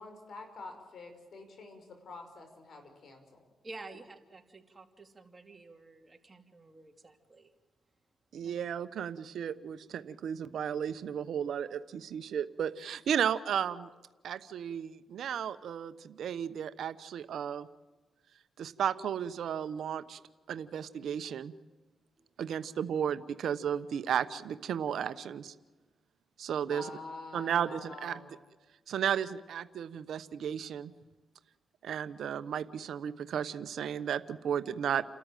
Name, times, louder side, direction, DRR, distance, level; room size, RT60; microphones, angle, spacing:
voice 1, 0.0-3.5 26.6-28.3, left 3 dB, 65° left, 6 dB, 5.6 m, -47 dB
voice 2, 3.6-7.5 8.4-8.6 22.2-22.3, right 3 dB, 30° right, 4 dB, 2.8 m, -50 dB
voice 3, 8.3-13.9 14.2-17.7 18.6-20.2 20.5-21.5 22.4-25.5 26.4-26.8 27.3-28.2 28.9-30.9 31.8-35.0, right 8 dB, 80° right, 12 dB, 1.0 m, -34 dB
29.5 x 13.5 x 9.1 m, 1.2 s
cardioid pair, 70°, 0 cm